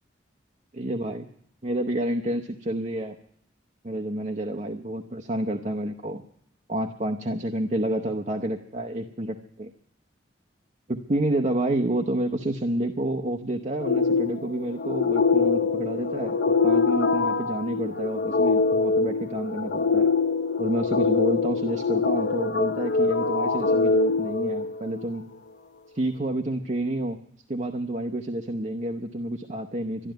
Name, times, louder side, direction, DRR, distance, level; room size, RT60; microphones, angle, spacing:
voice 1, 0.7-1.3 1.6-3.1 3.8-6.2 6.7-9.7 10.9-16.4 16.6-20.1 20.6-25.2 25.9-27.2 27.5-30.1, right 1 dB, 40° right, 4 dB, 0.8 m, -29 dB
sound 1, 13.8-25.1, left 4 dB, 65° left, 0.5 m, -24 dB
12.5 x 12.0 x 9.1 m, 0.68 s
head